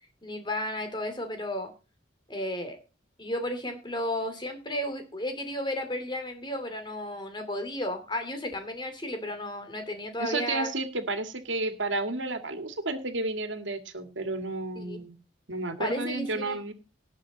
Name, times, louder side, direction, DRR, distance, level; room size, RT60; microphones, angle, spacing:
voice 1, 0.2-1.7 2.3-2.8 3.2-10.7 14.8-15.0 15.8-16.6, left 1 dB, 25° left, 6 dB, 2.6 m, -33 dB
voice 2, 10.2-15.2 15.5-16.7, right 2 dB, 75° right, 7 dB, 2.2 m, -32 dB
18.5 x 7.0 x 4.1 m, 0.32 s
head